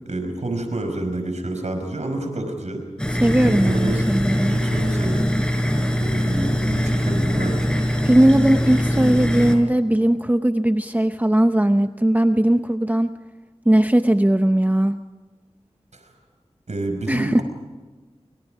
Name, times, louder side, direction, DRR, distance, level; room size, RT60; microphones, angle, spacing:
voice 1, 0.0-2.8 3.4-4.0 4.5-5.3 6.0-7.6 15.9-16.0 16.7-17.4, right 2 dB, 90° right, 5 dB, 5.2 m, -28 dB
sound 1, 3.0-9.6, equal, 10° left, 5.1 m, -22 dB
voice 2, 3.2-4.6 8.0-13.1 13.7-15.0 17.1-17.4, right 1 dB, 15° right, 8 dB, 0.8 m, -18 dB
29.5 x 25.0 x 5.0 m, 1.3 s
wide cardioid pair, 55°, 12 cm